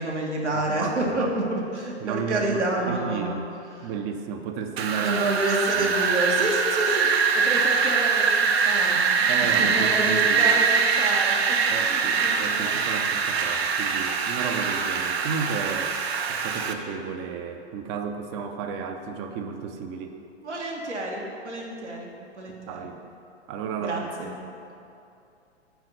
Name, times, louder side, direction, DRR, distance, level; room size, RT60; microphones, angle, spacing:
voice 1, 0.0-3.4 3.8-3.9 5.0-12.7 20.4-22.9 23.8-24.3, right 1 dB, 85° right, -1 dB, 1.6 m, -29 dB
voice 2, 0.7-1.3 2.0-3.5 3.8-5.2 5.7-5.9 9.3-10.6 11.7-15.9 16.3-20.1 22.6-23.0 23.5-24.0 24.2-24.3, right 6 dB, 25° right, 6 dB, 0.5 m, -33 dB
Wind, 4.8-16.7, right 5 dB, 65° right, 0.7 m, -23 dB
9.1 x 3.7 x 6.6 m, 2.7 s
figure-of-eight pair, 110°, 34 cm